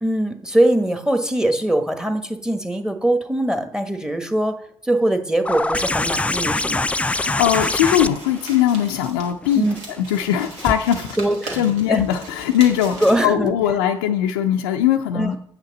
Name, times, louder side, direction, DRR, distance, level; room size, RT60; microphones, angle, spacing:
voice 1, 0.0-6.9 9.6-9.7 11.2-12.0 13.0-13.5 15.1-15.4, right 1 dB, 5° right, 8 dB, 1.3 m, -21 dB
sound 1, 5.4-10.7 12.1-12.2, left 2 dB, 10° left, 0.4 m, -25 dB
voice 2, 7.0-11.1 11.5-15.4, left 10 dB, 75° left, 4 dB, 0.5 m, -20 dB
sound 2, 7.5-13.2, right 2 dB, 70° right, 1.9 m, -38 dB
8.8 x 8.1 x 4.0 m, 0.62 s
figure-of-eight pair, 40°, 12 cm